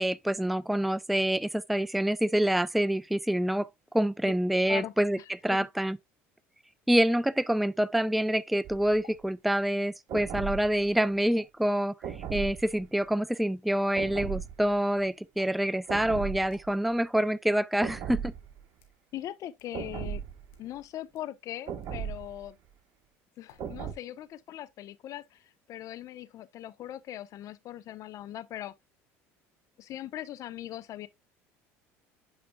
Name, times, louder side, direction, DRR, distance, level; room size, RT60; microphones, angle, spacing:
voice 1, 0.0-3.7 3.9-5.2 5.4-6.0 6.9-18.3, right 1 dB, ahead, 0.3 m, -27 dB
voice 2, 4.7-5.7 19.1-20.2 20.6-22.6 23.4-28.7 29.8-31.1, left 13 dB, 55° left, 0.7 m, -40 dB
sound 1, 8.0-8.1 9.0-9.2 10.2-10.4 11.4-11.5 12.4-12.7 15.4-15.6 16.5-16.6 17.6-17.7 18.5-19.0 19.6-19.7 20.4-20.7 21.1-21.3 21.8-22.0 23.5-23.9 24.2-24.6, left 10 dB, 80° left, 1.7 m, -57 dB
sound 2, 8.6-9.0 10.1-10.9 12.0-12.8 14.0-14.7 15.9-16.7 17.8-18.6 19.7-20.5 21.7-22.5 23.6-23.9, right 8 dB, 55° right, 1.4 m, -37 dB
8.9 x 5.1 x 2.2 m
supercardioid pair, 85°, 7 cm